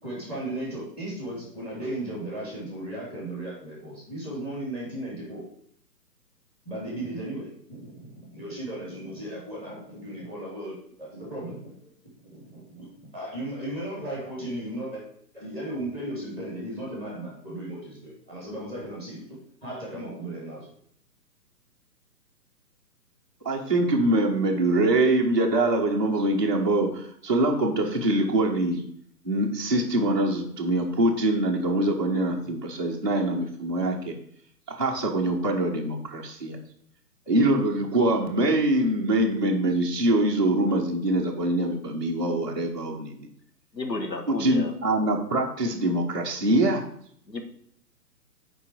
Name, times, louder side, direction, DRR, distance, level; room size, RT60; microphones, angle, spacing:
voice 1, 0.0-5.4 6.6-11.9 12.3-15.0 15.3-20.7, right 1 dB, 10° left, -4 dB, 2.9 m, -36 dB
voice 2, 23.4-28.8 29.2-34.2 34.8-36.6 37.3-43.3 44.3-46.8, right 1 dB, 15° right, -6 dB, 0.5 m, -24 dB
voice 3, 43.7-44.7 47.3-47.4, left 2 dB, 85° left, 4 dB, 1.5 m, -32 dB
7.1 x 4.6 x 4.8 m, 0.65 s
figure-of-eight pair, 135°, 49 cm